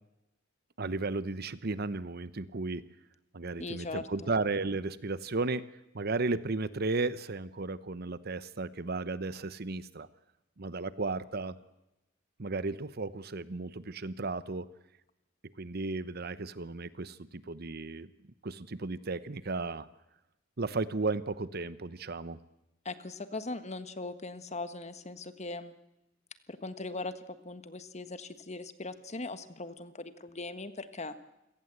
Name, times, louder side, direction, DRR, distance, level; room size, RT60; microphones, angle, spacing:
voice 1, 0.8-2.8 3.3-5.7 5.9-10.1 10.6-11.6 12.4-14.7 15.6-18.1 18.4-19.9 20.6-22.4, right 3 dB, 55° right, 16 dB, 0.9 m, -34 dB
voice 2, 3.6-4.3 22.8-25.7 26.5-31.1, left 3 dB, 35° left, 11 dB, 1.4 m, -40 dB
28.0 x 17.5 x 8.1 m, 0.94 s
head